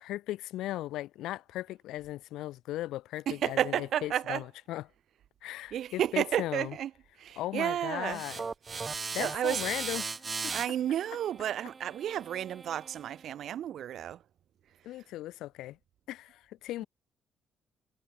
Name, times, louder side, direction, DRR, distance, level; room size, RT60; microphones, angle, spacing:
voice 1, 0.0-4.8 5.4-6.7 7.4-8.4 9.1-10.1 10.4-10.5 14.8-15.8 16.1-16.9, left 15 dB, 90° left, 1.0 m, -37 dB
voice 2, 3.3-4.4 5.7-6.9 7.2-8.2 8.8-9.6 10.5-14.2, right 10 dB, 70° right, 0.9 m, -32 dB
sound 1, 8.0-13.2, right 4 dB, 35° right, 1.1 m, -38 dB
cardioid pair, 90°, 0 cm